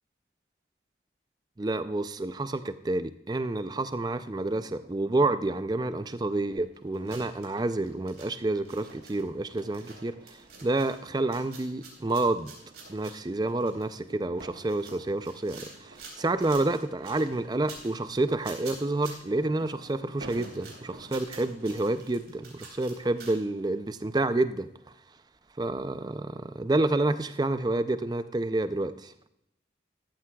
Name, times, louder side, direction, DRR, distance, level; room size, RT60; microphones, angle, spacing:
voice 1, 1.6-12.5 12.9-24.7 25.6-29.1, right 2 dB, 20° right, 12 dB, 0.4 m, -29 dB
sound 1, 3.6-21.8, right 2 dB, 80° right, 1.5 m, -52 dB
sound 2, 6.6-24.0 24.2-24.3 25.4-25.5, right 4 dB, 55° right, 3.6 m, -49 dB
14.5 x 12.5 x 2.3 m, 0.79 s
head